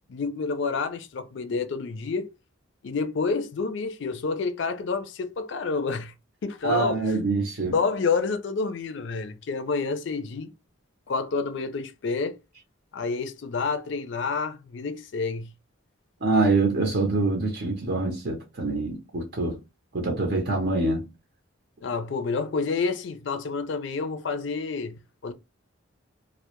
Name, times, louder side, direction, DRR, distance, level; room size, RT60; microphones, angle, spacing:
voice 1, 0.1-2.3 2.8-6.1 6.4-7.0 7.7-10.5 11.1-12.4 12.9-15.5 21.8-25.3, left 4 dB, 60° left, 0.4 m, -29 dB
voice 2, 6.6-7.7 16.2-19.6 19.9-21.1, right 3 dB, 50° right, 0.6 m, -25 dB
2.1 x 2.0 x 2.9 m
head